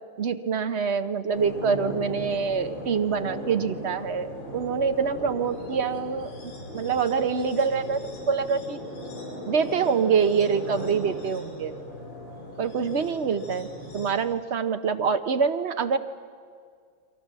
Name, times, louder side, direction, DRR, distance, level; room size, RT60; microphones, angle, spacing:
voice 1, 0.2-6.3 6.7-8.8 9.4-11.7 12.6-13.7 13.9-16.0, right 6 dB, 55° right, 8 dB, 0.7 m, -25 dB
sound 1, 1.3-14.1, equal, 85° left, 6.6 m, -38 dB
30.0 x 23.0 x 7.5 m, 2.1 s
omnidirectional pair, 2.3 m